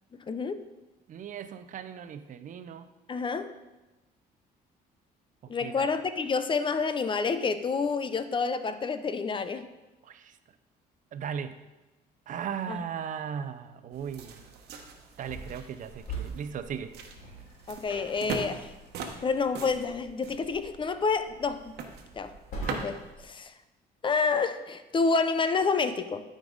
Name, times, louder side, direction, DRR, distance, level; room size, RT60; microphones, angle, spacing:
voice 1, 0.3-0.6 3.1-3.5 5.5-9.6 12.7-12.8 17.7-18.7 19.2-21.8 22.2-22.3 22.7-23.5 24.0-26.2, left 4 dB, 30° left, 11 dB, 0.5 m, -28 dB
voice 2, 1.1-2.9 5.4-5.9 10.0-10.4 11.1-11.6 12.3-14.5 15.2-16.9, right 7 dB, 50° right, 11 dB, 0.6 m, -37 dB
sound 1, 13.9-23.1, right 5 dB, 75° right, 1.2 m, -42 dB
sound 2, 15.2-23.3, right 1 dB, 55° left, 3.1 m, -44 dB
12.5 x 5.2 x 3.9 m, 1.1 s
cardioid pair, 110°, 17 cm